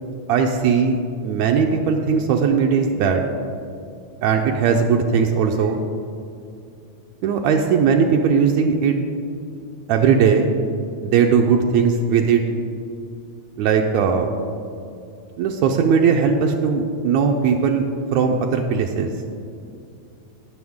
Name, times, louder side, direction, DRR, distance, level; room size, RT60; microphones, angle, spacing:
voice 1, 0.3-1.0 1.2-3.2 4.2-5.8 7.2-9.0 9.9-10.5 11.0-12.4 13.6-14.3 15.4-17.9 18.1-19.1, right 6 dB, 80° right, 2 dB, 1.8 m, -18 dB
17.5 x 6.8 x 3.6 m, 2.5 s
omnidirectional pair, 3.4 m